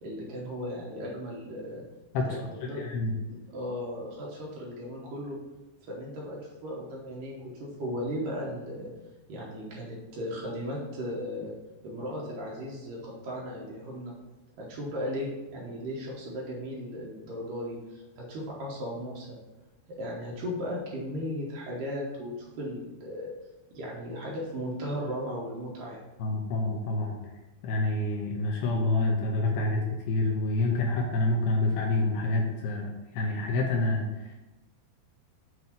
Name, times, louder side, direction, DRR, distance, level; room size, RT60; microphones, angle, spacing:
voice 1, 0.0-1.8 2.2-2.8 3.5-5.4 5.9-8.9 9.3-11.5 11.8-14.1 14.6-19.4 20.0-23.3 23.7-26.0, equal, 70° right, -4 dB, 2.1 m, -36 dB
voice 2, 2.1-3.2 26.2-27.2 27.6-34.3, left 2 dB, 80° left, 0 dB, 2.4 m, -28 dB
7.9 x 2.7 x 5.8 m, 1.1 s
omnidirectional pair, 5.1 m